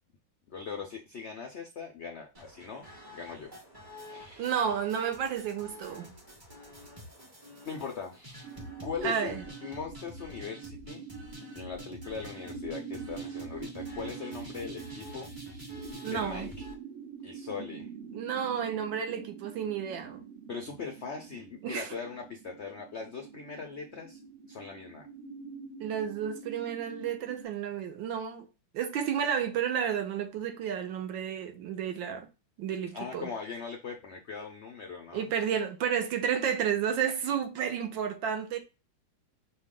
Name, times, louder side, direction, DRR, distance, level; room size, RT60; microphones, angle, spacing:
voice 1, 0.5-3.5 4.1-4.5 7.6-8.5 8.8-11.0 11.5-15.3 16.0-16.7 17.2-17.9 20.5-24.2 24.5-25.1 32.9-35.2, left 5 dB, 80° left, 0.6 m, -40 dB
sound 1, 2.3-16.7, left 1 dB, 20° right, 0.5 m, -48 dB
voice 2, 4.4-6.1 9.0-9.4 16.0-16.5 18.1-20.2 21.6-21.9 25.8-28.5 28.7-32.3 32.6-33.3 35.1-38.6, right 8 dB, 80° right, 1.5 m, -31 dB
sound 2, 8.4-27.4, right 6 dB, 65° right, 0.7 m, -45 dB
5.6 x 2.3 x 3.6 m
omnidirectional pair, 2.1 m